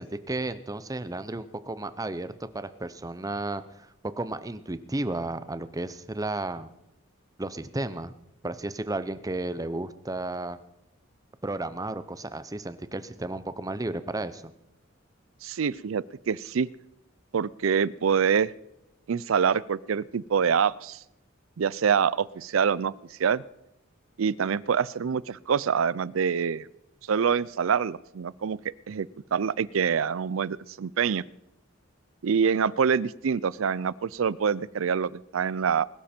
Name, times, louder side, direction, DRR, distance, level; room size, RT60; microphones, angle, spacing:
voice 1, 0.0-6.7 7.4-8.1 8.4-10.6 11.4-14.5, right 2 dB, 15° right, 13 dB, 0.7 m, -33 dB
voice 2, 15.4-16.7 17.3-18.5 19.1-21.0 21.6-22.9 23.2-23.4 24.2-26.7 27.1-28.6 28.9-31.2 32.2-35.9, right 6 dB, 75° right, 21 dB, 0.4 m, -25 dB
21.0 x 12.5 x 4.4 m, 0.86 s
head